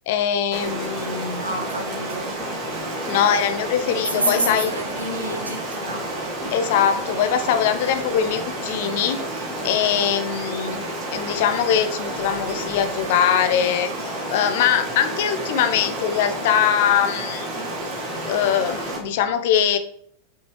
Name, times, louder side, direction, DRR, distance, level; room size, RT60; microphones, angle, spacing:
voice 1, 0.1-1.5 3.1-4.7 6.5-9.2 9.6-10.8 11.1-17.5 18.3-19.8, left 9 dB, 50° left, 0.7 m, -22 dB
Stream, 0.5-19.0, right 1 dB, 35° right, 2.2 m, -30 dB
voice 2, 1.4-2.4 4.1-6.1, right 2 dB, 80° right, 1.2 m, -28 dB
5.9 x 5.5 x 3.2 m
figure-of-eight pair, 90°, 0 cm